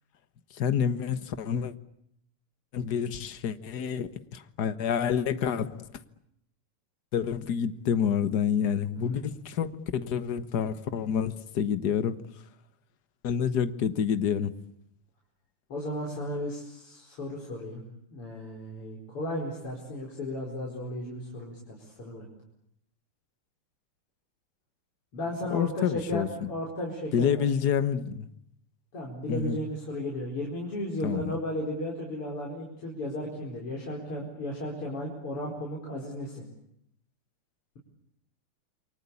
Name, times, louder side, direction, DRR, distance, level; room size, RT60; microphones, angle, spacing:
voice 1, 0.6-1.7 2.7-5.9 7.1-12.3 13.2-14.5 25.5-26.5 27.1-28.3 29.3-29.6 31.0-31.4, left 8 dB, 50° left, 12 dB, 1.7 m, -28 dB
voice 2, 15.7-17.8 18.1-22.3 25.1-27.7 28.9-36.4, left 1 dB, 85° left, -3 dB, 5.7 m, -35 dB
29.0 x 23.5 x 8.4 m, 0.74 s
omnidirectional pair, 2.4 m